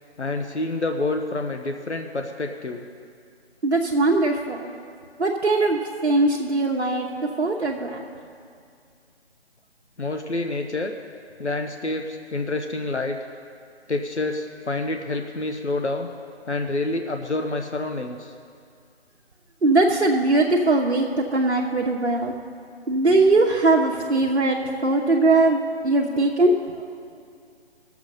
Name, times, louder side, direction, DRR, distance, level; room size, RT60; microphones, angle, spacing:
voice 1, 0.2-2.9 10.0-10.9 11.4-13.2 13.9-16.1 16.5-18.3, left 2 dB, 85° left, 4 dB, 1.0 m, -28 dB
voice 2, 3.6-4.8 5.2-7.1 7.4-8.0 19.6-22.3 22.9-24.6 24.8-26.8, right 2 dB, 75° right, -2 dB, 1.1 m, -20 dB
17.0 x 7.2 x 5.4 m, 2.3 s
figure-of-eight pair, 150°, 33 cm